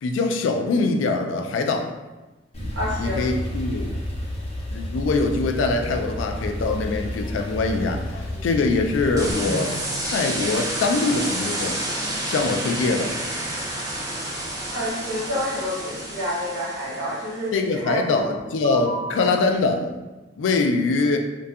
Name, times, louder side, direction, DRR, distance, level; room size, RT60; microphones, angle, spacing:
voice 1, 0.0-1.9 3.0-3.9 4.7-11.8 12.3-13.1 17.5-19.9 20.4-21.2, left 3 dB, 90° left, 5 dB, 0.3 m, -23 dB
Male speech man speaking / Car / Idling, 2.5-9.3, left 1 dB, 35° left, 0.5 m, -30 dB
voice 2, 2.7-3.3 14.7-18.3 18.6-19.2, equal, 85° right, -5 dB, 0.9 m, -29 dB
sound 1, 9.2-17.4, right 1 dB, 20° right, 0.4 m, -29 dB
2.6 x 2.2 x 2.3 m, 1.1 s
head